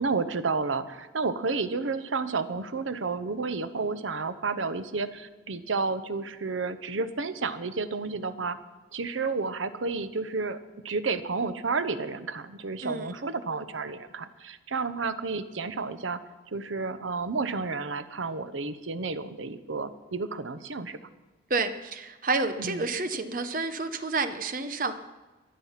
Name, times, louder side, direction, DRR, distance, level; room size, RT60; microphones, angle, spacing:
voice 1, 0.0-8.6 8.9-10.6 10.8-16.2 16.5-21.0 22.6-22.9, right 4 dB, 85° right, 11 dB, 0.9 m, -31 dB
voice 2, 21.5-24.9, right 3 dB, 45° right, 9 dB, 0.9 m, -29 dB
23.0 x 7.7 x 5.8 m, 1.2 s
head